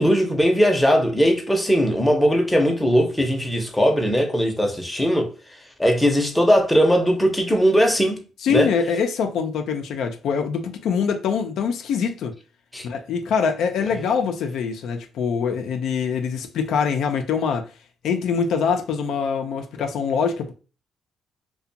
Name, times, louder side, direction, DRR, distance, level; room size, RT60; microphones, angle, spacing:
voice 1, 0.0-5.3 5.8-8.2 8.5-8.7 12.7-12.9, equal, 5° left, 0.6 m, -19 dB
voice 2, 8.4-12.3 12.8-17.7 18.0-20.5, left 6 dB, 75° left, 0.3 m, -24 dB
2.5 x 2.2 x 2.6 m
cardioid pair, 90°, 0 cm